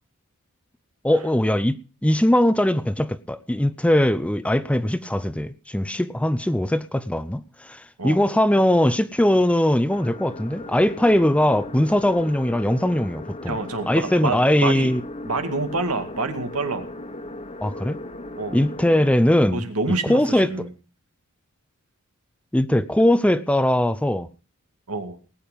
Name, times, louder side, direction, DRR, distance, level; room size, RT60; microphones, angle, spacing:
voice 1, 1.0-13.6 13.9-15.0 17.6-18.0 18.5-19.6 20.1-20.5 22.5-24.3, left 1 dB, 5° left, 0.6 m, -20 dB
sound 1, 9.9-19.1, left 1 dB, 30° left, 1.4 m, -37 dB
voice 2, 13.5-14.9 15.2-16.9 18.4-18.6 19.5-20.7 24.9-25.2, right 3 dB, 90° right, 2.2 m, -27 dB
19.5 x 9.2 x 5.2 m
head